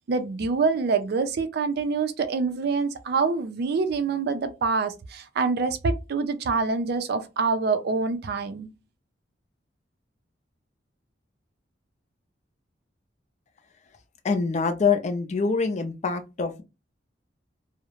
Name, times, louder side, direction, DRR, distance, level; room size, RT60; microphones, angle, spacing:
voice 1, 0.1-8.7, right 4 dB, 60° right, 0.4 m, -26 dB
voice 2, 14.2-16.6, left 5 dB, 40° left, 0.4 m, -25 dB
2.4 x 2.0 x 2.9 m
head